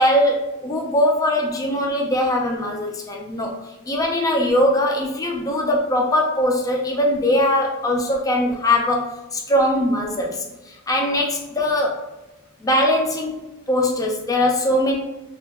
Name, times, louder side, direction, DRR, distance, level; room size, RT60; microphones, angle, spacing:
voice 1, 0.0-3.6 3.9-12.0 12.6-15.0, left 1 dB, 15° left, 0 dB, 0.4 m, -21 dB
2.7 x 2.3 x 2.8 m, 1.0 s
head